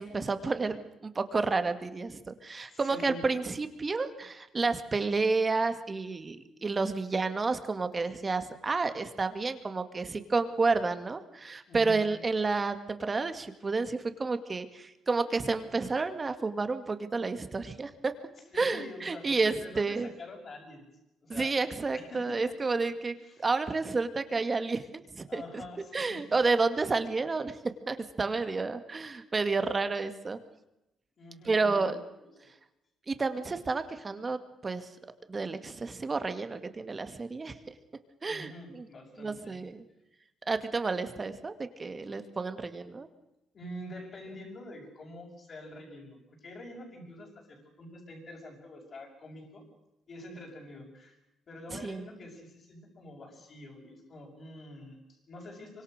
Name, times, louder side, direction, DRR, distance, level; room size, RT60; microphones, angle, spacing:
voice 1, 0.0-18.1 18.5-20.1 21.3-25.6 25.9-27.6 27.9-30.4 31.4-32.0 33.1-34.9 35.3-37.6 38.2-38.9 39.2-39.9 40.5-43.1 51.7-52.1, right 3 dB, 30° right, 9 dB, 2.1 m, -30 dB
voice 2, 2.6-3.2 11.7-12.0 18.5-20.8 21.2-21.5 21.9-22.4 23.2-23.5 25.3-26.3 31.2-32.5 38.3-39.6 43.5-49.6 50.1-51.2 51.5-55.8, left 1 dB, 45° left, -4 dB, 6.5 m, -46 dB
25.5 x 24.5 x 6.7 m, 0.92 s
cardioid pair, 105°, 0 cm